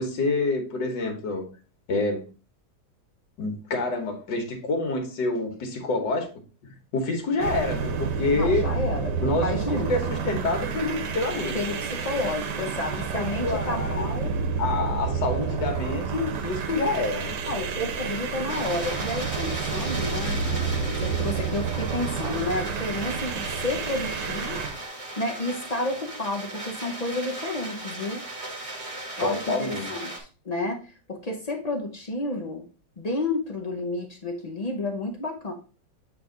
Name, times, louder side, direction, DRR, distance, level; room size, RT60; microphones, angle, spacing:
voice 1, 0.0-1.4 1.9-2.2 3.4-6.3 6.9-8.7 9.2-11.8 13.1-14.1 14.6-17.4 29.2-29.9, left 3 dB, 75° left, 3 dB, 1.9 m, -27 dB
sound 1, 7.4-24.7, right 6 dB, 70° right, 1.4 m, -29 dB
voice 2, 8.4-10.1 11.5-14.4 17.5-24.6 25.2-28.2 29.2-32.7 33.0-35.5, left 2 dB, 60° left, 2 dB, 0.4 m, -31 dB
sound 2, 18.5-30.2, right 2 dB, 20° right, 1.1 m, -37 dB
7.7 x 3.3 x 3.8 m, 0.34 s
omnidirectional pair, 2.0 m